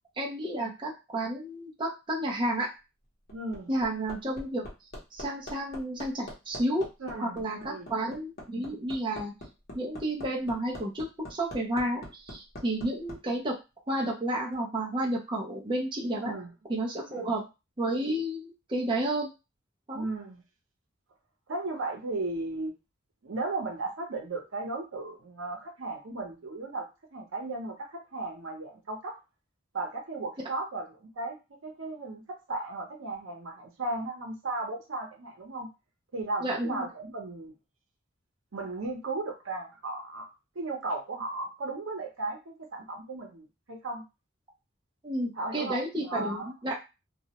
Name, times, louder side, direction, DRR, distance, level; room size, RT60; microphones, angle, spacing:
voice 1, 0.2-2.7 3.7-4.7 5.1-6.9 7.2-9.3 9.7-13.6 13.9-16.3 16.7-17.4 17.8-19.3 19.9-20.0 36.4-36.9 45.0-46.7, right 1 dB, 25° right, -3 dB, 0.5 m, -31 dB
Hammer, 3.0-13.2 14.5-14.6, left 1 dB, 50° left, 0.8 m, -43 dB
voice 2, 3.3-3.7 7.0-7.9 16.1-16.5 17.1-17.3 19.9-20.4 21.5-22.7 23.2-26.9 27.1-29.2 29.7-31.4 31.6-35.7 36.1-37.5 38.5-40.3 40.5-44.0 45.3-46.5, right 2 dB, 85° right, 2 dB, 0.7 m, -35 dB
2.3 x 2.1 x 2.8 m, 0.26 s
head